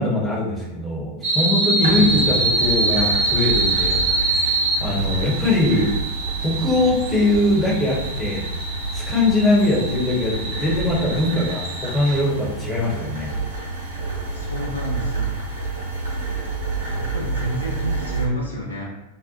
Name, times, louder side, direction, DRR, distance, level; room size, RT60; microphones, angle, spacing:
voice 1, 0.0-5.9 6.4-8.5 8.9-13.3, left 2 dB, 20° left, -4 dB, 0.8 m, -21 dB
sound 1, 1.2-12.2, right 2 dB, 35° right, 0.6 m, -25 dB
sound 2, 1.8-18.2, right 3 dB, 70° right, 0.8 m, -29 dB
voice 2, 4.7-5.1 14.3-15.4 16.9-18.8, right 1 dB, 80° left, -4 dB, 0.6 m, -29 dB
2.5 x 2.1 x 2.8 m, 0.97 s
figure-of-eight pair, 90°, 0 cm